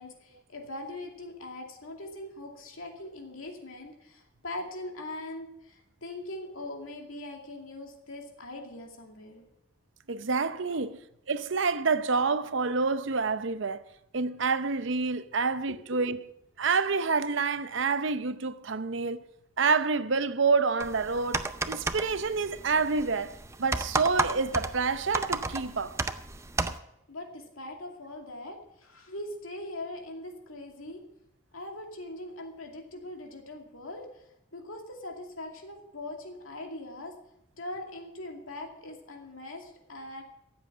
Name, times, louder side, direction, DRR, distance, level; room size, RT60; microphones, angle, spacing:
voice 1, 0.0-9.4 10.7-10.8 27.1-31.0 31.5-34.2 34.5-37.1 37.6-40.2, left 1 dB, 80° left, 2.5 m, -41 dB
voice 2, 10.1-11.0 11.3-13.8 14.1-16.2 16.6-19.2 19.6-26.0, right 4 dB, 60° right, 0.7 m, -28 dB
sound 1, 20.8-26.8, right 3 dB, 15° right, 0.5 m, -33 dB
14.5 x 8.2 x 7.6 m
head